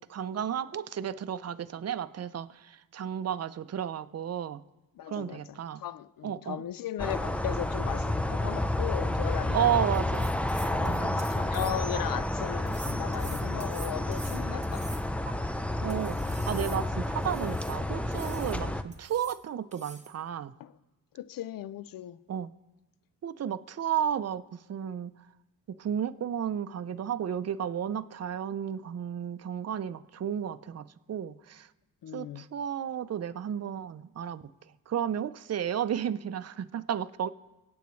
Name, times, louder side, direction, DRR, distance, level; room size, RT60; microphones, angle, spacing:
voice 1, 0.1-4.6 5.1-5.8 6.2-6.6 9.5-10.3 10.8-11.3 15.8-20.5 22.3-22.5 23.2-24.4 24.7-25.1 25.8-31.7 32.1-34.4 34.9-37.3, right 9 dB, 45° right, 0.6 m, -33 dB
voice 2, 5.0-9.9 10.6-14.9 20.6-20.7 21.1-22.2 32.0-32.5, left 11 dB, 70° left, 0.6 m, -37 dB
sound 1, 7.0-18.8, left 1 dB, 5° left, 0.6 m, -30 dB
sound 2, 9.9-12.0 12.7-15.3 15.9-17.8 18.1-18.6 18.9-19.4 19.7-20.2, right 4 dB, 20° right, 1.1 m, -47 dB
25.5 x 8.7 x 3.2 m
cardioid pair, 65°, 35 cm